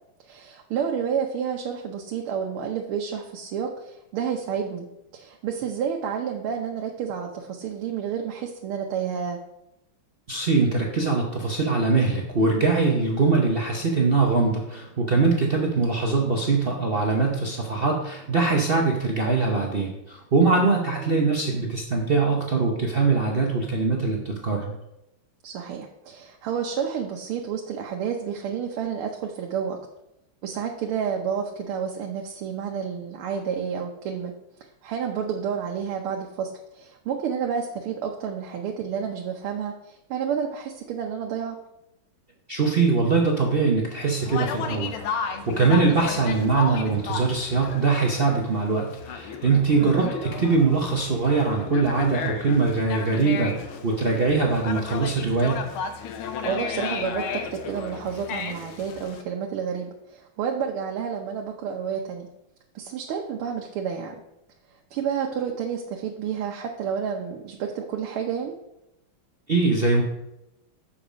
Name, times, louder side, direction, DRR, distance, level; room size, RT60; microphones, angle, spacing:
voice 1, 0.2-4.9 5.1-9.4 20.7-21.2 25.4-29.8 30.4-34.3 34.8-41.6 49.8-50.1 56.4-62.3 62.7-64.2 64.9-68.5, right 7 dB, 85° right, 1 dB, 1.7 m, -30 dB
voice 2, 10.3-24.7 42.5-55.6 69.5-70.0, right 4 dB, 55° right, 0 dB, 0.6 m, -22 dB
Conversation, 44.2-59.2, left 6 dB, 80° left, 1.6 m, -34 dB
7.1 x 5.8 x 5.0 m, 0.87 s
omnidirectional pair, 2.3 m